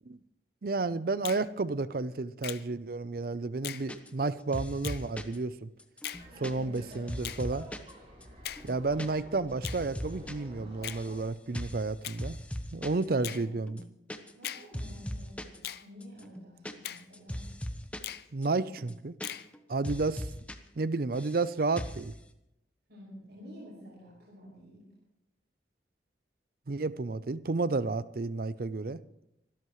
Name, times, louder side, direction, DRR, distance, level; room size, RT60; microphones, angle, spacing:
voice 1, 0.6-5.7 6.4-7.7 8.6-12.4 12.7-13.8 18.3-19.1 19.7-20.3 20.8-22.1 26.7-29.0, right 3 dB, 50° right, 16 dB, 0.5 m, -31 dB
Finger snapping, 1.2-1.5 2.4-2.7 3.6-3.9 4.8-5.0 6.0-6.3 7.2-7.5 8.4-8.7 9.6-9.8 10.8-11.0 12.0-12.2 13.2-13.5 14.4-14.7 15.6-15.9 16.8-17.1 18.0-18.3 19.2-19.5, left 11 dB, 55° left, 0.6 m, -39 dB
sound 1, 3.9-4.3 4.5-5.4 5.8-7.9 8.2-8.3 8.6-9.1 9.3-10.3 10.6-11.2 11.5-11.9 12.2-13.1 13.3-13.4 13.7-14.5 14.7-15.6 16.0-18.1 18.4-18.5 18.8-19.6 19.8-20.6 20.8-21.4 21.8-22.1, equal, 5° left, 0.8 m, -39 dB
Laughter, 6.1-11.2, equal, 30° right, 5.9 m, -50 dB
voice 2, 6.3-6.9 13.1-13.7 14.3-17.4 22.9-24.8, left 1 dB, 65° right, -6 dB, 6.0 m, -50 dB
26.0 x 13.0 x 3.2 m, 0.85 s
head